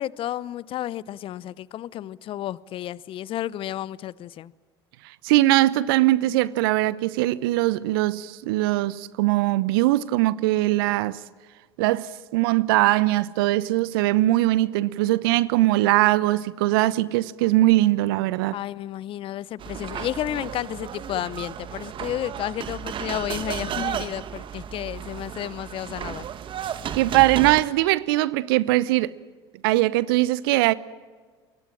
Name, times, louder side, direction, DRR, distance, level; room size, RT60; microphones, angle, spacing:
voice 1, 0.0-4.5 18.5-26.3, left 12 dB, 45° left, 0.8 m, -32 dB
voice 2, 5.2-11.2 11.8-18.6 26.9-29.1 29.6-30.7, right 17 dB, 65° right, 0.8 m, -21 dB
sound 1, 19.6-27.6, right 9 dB, 40° right, 1.5 m, -33 dB
27.5 x 22.5 x 7.6 m
figure-of-eight pair, 70°, 13 cm